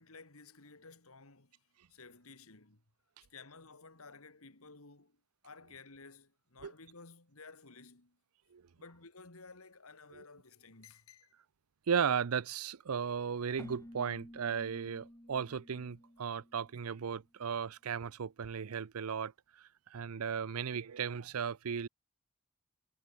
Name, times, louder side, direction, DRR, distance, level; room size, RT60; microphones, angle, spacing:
voice 1, 0.0-2.8 3.3-5.2 5.4-8.2 8.8-11.3, left 4 dB, 75° left, 2.7 m, -55 dB
voice 2, 11.9-21.9, right 7 dB, 90° right, 0.6 m, -36 dB
Keyboard (musical), 13.6-17.2, equal, 15° left, 2.7 m, -53 dB
head